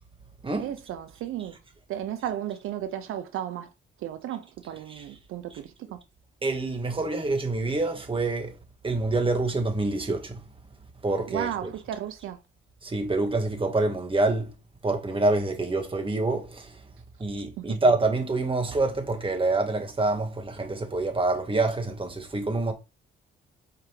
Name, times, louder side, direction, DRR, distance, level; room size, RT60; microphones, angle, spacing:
voice 1, 0.6-1.6 1.9-3.7 4.0-6.0 11.3-12.4 17.6-17.8, right 11 dB, 80° right, 0.5 m, -34 dB
voice 2, 6.4-8.5 8.8-10.4 11.0-11.7 12.8-14.5 14.8-16.7 17.2-22.7, right 2 dB, 25° right, 1.5 m, -26 dB
4.8 x 3.3 x 3.1 m
cardioid pair, 70°, 21 cm